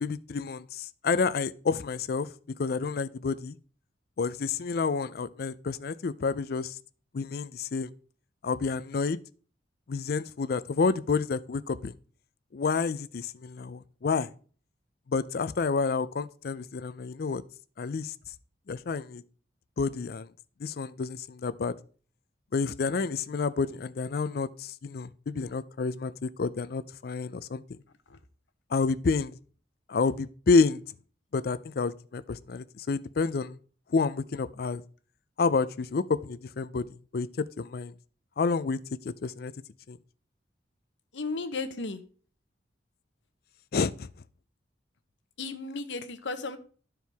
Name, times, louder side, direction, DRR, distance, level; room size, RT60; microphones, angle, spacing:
voice 1, 0.0-2.3 2.6-3.6 4.2-6.7 7.1-7.9 8.4-9.2 9.9-11.9 12.5-14.3 15.1-17.4 17.8-18.1 18.7-19.2 19.8-20.3 20.6-21.7 22.5-27.6 28.7-29.4 29.9-30.8 31.3-33.6 33.9-34.8 35.4-36.9 37.1-37.9 38.4-38.8 39.0-39.5 39.9-40.0 43.7-44.1, left 4 dB, 55° left, 0.4 m, -29 dB
voice 2, 41.1-42.0 45.4-46.6, left 3 dB, 80° left, 0.9 m, -34 dB
12.5 x 4.5 x 3.4 m
head